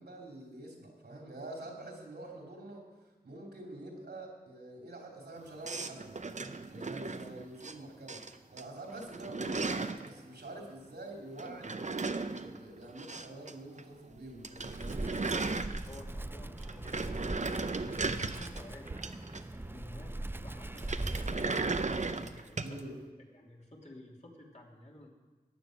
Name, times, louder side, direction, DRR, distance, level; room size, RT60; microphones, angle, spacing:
voice 1, 0.0-2.9 3.2-15.2 22.6-23.0, right 1 dB, 90° right, 0 dB, 3.0 m, -46 dB
sound 1, 5.6-7.7 8.1-8.6 8.9-10.1 11.4-13.5 13.8-13.9 14.2-14.3 14.4-16.2 16.6-19.7 20.7-22.8, right 3 dB, 45° right, 0.7 m, -36 dB
Wind, 14.6-22.3, right 2 dB, 15° right, 0.4 m, -41 dB
voice 2, 15.5-19.0 19.5-22.8 23.3-25.1, left 1 dB, 45° left, -2 dB, 3.0 m, -51 dB
14.5 x 9.7 x 6.4 m, 1.2 s
wide cardioid pair, 50°, 16 cm